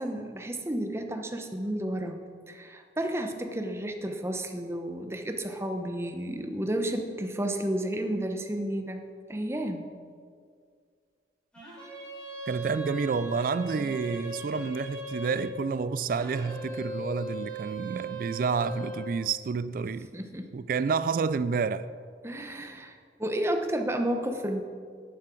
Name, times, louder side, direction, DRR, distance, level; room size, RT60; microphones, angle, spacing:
voice 1, 0.0-2.2 2.5-9.0 9.3-9.9 20.1-20.5 22.2-24.6, right 1 dB, 15° right, 0.7 m, -32 dB
sound 1, 11.5-15.6 16.1-19.1, right 2 dB, 5° left, 3.3 m, -38 dB
voice 2, 12.5-20.1 20.5-21.9, right 5 dB, 50° right, 0.3 m, -29 dB
10.5 x 9.8 x 4.5 m
head